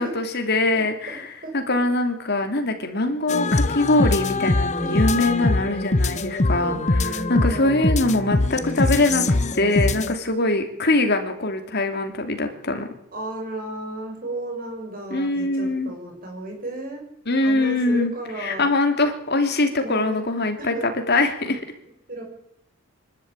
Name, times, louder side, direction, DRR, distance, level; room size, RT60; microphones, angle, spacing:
voice 1, 0.0-9.2 9.5-12.9 15.1-15.9 17.3-18.1 18.4-21.6, left 2 dB, 50° left, 6 dB, 2.7 m, -23 dB
voice 2, 0.7-1.2 1.4-1.8 4.8-5.7 6.4-7.8 13.1-17.0 17.4-18.7 19.8-20.2 20.6-20.9 22.1-22.2, right 2 dB, 40° right, 2 dB, 6.2 m, -34 dB
sound 1, 3.3-10.2, left 2 dB, 35° left, 0.8 m, -23 dB
23.5 x 12.5 x 8.9 m, 0.77 s
head